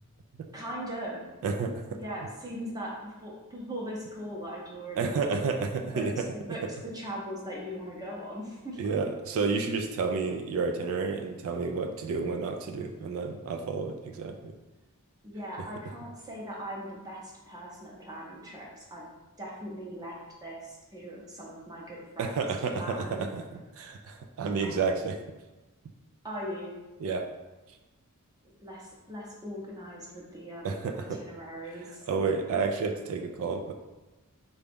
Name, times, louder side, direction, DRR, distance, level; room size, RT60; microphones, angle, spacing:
voice 1, 0.5-1.3 2.0-5.2 5.9-6.0 6.3-9.0 15.2-19.0 19.4-22.5 22.8-23.3 26.2-26.8 28.6-32.1, equal, 15° right, -4 dB, 0.7 m, -40 dB
voice 2, 1.4-2.0 5.0-6.1 8.8-14.5 22.2-25.2 27.0-27.2 30.6-31.2 32.1-33.7, right 4 dB, 65° right, 5 dB, 0.3 m, -30 dB
3.8 x 2.3 x 3.4 m, 1.1 s
head